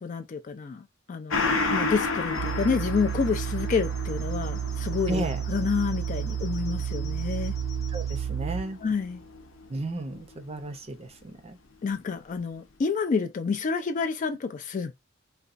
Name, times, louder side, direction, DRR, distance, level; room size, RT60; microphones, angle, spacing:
voice 1, 0.0-7.5 8.8-9.2 11.8-14.9, left 5 dB, 40° left, 0.3 m, -29 dB
Gong, 1.3-10.3 10.6-10.7, left 3 dB, 80° left, 0.6 m, -33 dB
sound 1, 2.3-8.3, left 6 dB, 20° left, 0.7 m, -50 dB
sound 2, 2.4-8.6, right 9 dB, 85° right, 0.3 m, -31 dB
voice 2, 5.1-5.4 7.9-8.8 9.7-11.6, right 2 dB, 30° right, 0.6 m, -33 dB
4.1 x 2.3 x 2.5 m
head